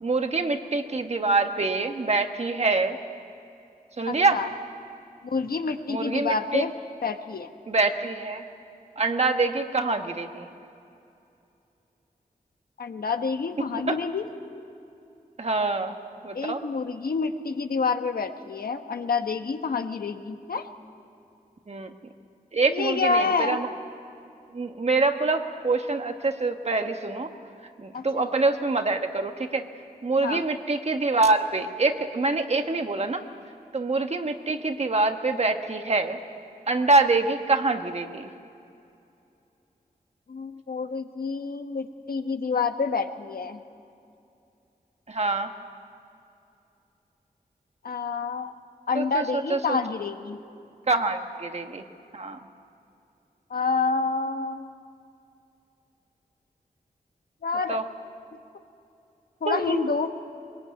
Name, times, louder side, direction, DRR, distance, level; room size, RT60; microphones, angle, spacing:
voice 1, 0.0-3.0 4.0-4.4 5.9-6.6 7.7-8.4 9.0-10.5 13.9-14.0 15.4-16.0 16.2-16.6 21.7-21.9 22.5-23.7 24.5-27.3 27.8-29.6 30.0-33.2 33.7-36.2 36.7-38.3 45.1-45.5 48.9-49.8 50.9-51.8 52.1-52.4 57.7-57.8 59.5-59.9, right 3 dB, 45° right, 6 dB, 1.4 m, -25 dB
voice 2, 4.1-4.5 5.2-6.7 7.0-7.5 12.8-14.3 16.3-20.7 22.6-23.6 27.9-28.3 30.2-30.4 40.3-43.6 47.8-48.5 48.9-50.4 53.5-54.7 57.4-57.8 59.4-60.1, left 4 dB, 75° left, 7 dB, 1.3 m, -28 dB
23.0 x 21.5 x 9.4 m, 2.7 s
wide cardioid pair, 125°, 16 cm